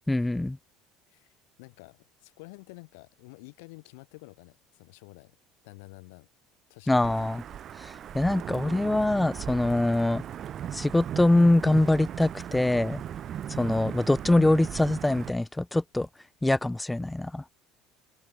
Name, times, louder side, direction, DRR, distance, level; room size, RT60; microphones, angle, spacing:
voice 1, 0.1-0.6 6.9-7.4 7.7-10.2 10.7-13.0 13.5-16.1 16.4-17.4, left 1 dB, 10° left, 0.6 m, -24 dB
voice 2, 1.6-5.4 5.6-6.3 6.7-7.3, left 27 dB, 80° left, 3.0 m, -49 dB
Wind / Thunder / Rain, 7.0-15.3, right 10 dB, 50° right, 0.7 m, -37 dB
hypercardioid pair, 80°, 0 cm